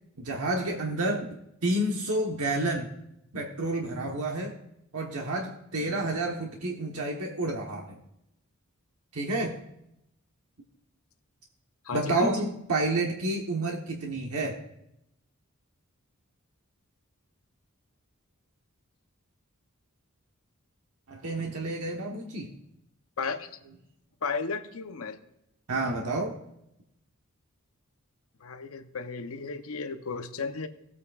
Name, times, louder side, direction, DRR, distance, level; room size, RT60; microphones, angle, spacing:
voice 1, 0.2-1.3 1.6-2.9 3.3-4.5 4.9-8.0 9.1-9.6 11.9-14.6 21.1-22.5 25.7-26.4, right 2 dB, 85° right, 1 dB, 1.1 m, -29 dB
voice 2, 23.2-23.5 24.2-25.2 28.4-30.7, left 4 dB, 70° left, 9 dB, 0.7 m, -34 dB
16.5 x 8.3 x 2.4 m, 0.81 s
head